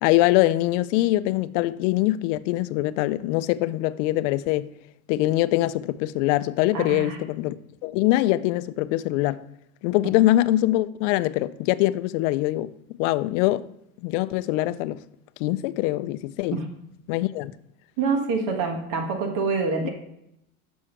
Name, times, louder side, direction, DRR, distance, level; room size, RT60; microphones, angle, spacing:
voice 1, 0.0-4.7 5.1-7.6 7.8-9.4 9.8-12.7 13.0-13.6 14.0-15.0 15.4-16.6 17.1-17.5 19.8-19.9, left 16 dB, 60° left, 0.5 m, -23 dB
voice 2, 6.7-7.2 16.5-16.6 18.0-19.9, right 4 dB, 50° right, 1.4 m, -26 dB
6.3 x 6.2 x 4.4 m
supercardioid pair, 120°, 43 cm